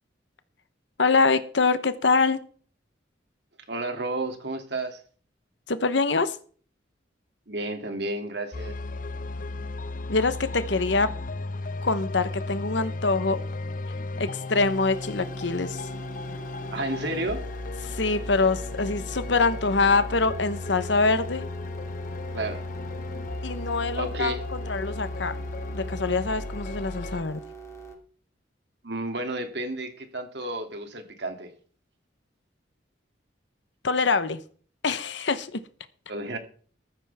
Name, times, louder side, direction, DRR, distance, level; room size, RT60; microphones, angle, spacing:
voice 1, 1.0-2.4 5.7-6.4 10.1-11.2 11.8-13.4 14.2-15.8 17.8-21.4 23.4-25.4 25.7-27.4 33.8-34.4 34.8-35.6, left 4 dB, 75° left, 12 dB, 1.1 m, -24 dB
voice 2, 3.7-5.0 7.5-8.7 16.7-17.4 22.3-22.6 24.0-24.4 28.8-31.5 36.1-36.4, right 2 dB, 60° right, 5 dB, 2.8 m, -31 dB
sound 1, 8.5-27.2, left 3 dB, 45° left, 0.7 m, -35 dB
sound 2, 14.5-28.0, right 5 dB, 15° left, 2.9 m, -43 dB
14.5 x 13.0 x 3.6 m, 0.44 s
head